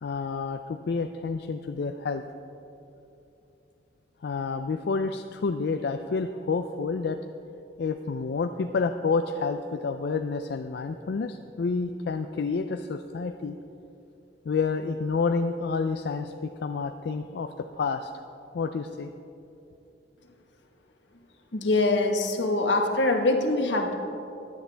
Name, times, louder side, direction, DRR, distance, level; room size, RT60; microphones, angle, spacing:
voice 1, 0.0-2.2 4.2-7.2 7.8-13.6 14.5-18.1 18.5-19.1, left 4 dB, 65° left, 7 dB, 0.4 m, -29 dB
voice 2, 21.5-23.9, left 2 dB, 85° left, 3 dB, 1.2 m, -24 dB
16.5 x 10.5 x 3.4 m, 2.8 s
head